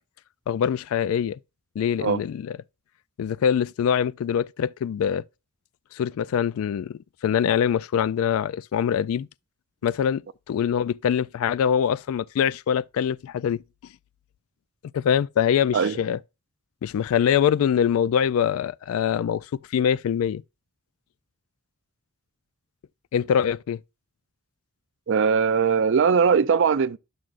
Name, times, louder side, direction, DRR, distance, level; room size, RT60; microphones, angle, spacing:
voice 1, 0.5-1.4 1.8-2.6 3.2-5.2 5.9-9.3 9.8-10.2 10.5-13.6 14.9-16.2 16.8-20.4 23.1-23.8, left 8 dB, 80° left, 0.3 m, -24 dB
voice 2, 25.1-27.0, right 6 dB, 60° right, 0.4 m, -20 dB
11.0 x 6.1 x 2.5 m
head